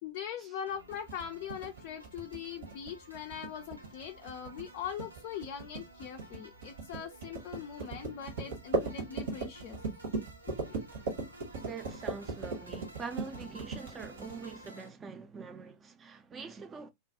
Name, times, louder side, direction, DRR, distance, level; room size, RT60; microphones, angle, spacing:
voice 1, 0.0-9.8 10.6-10.8, left 8 dB, 45° left, 0.3 m, -41 dB
sound 1, 0.7-14.9, right 1 dB, 80° right, 0.5 m, -53 dB
sound 2, 0.9-14.6, right 3 dB, 60° right, 1.0 m, -38 dB
voice 2, 11.6-16.9, right 5 dB, 20° right, 0.4 m, -44 dB
2.4 x 2.2 x 2.7 m
figure-of-eight pair, 90°, 0 cm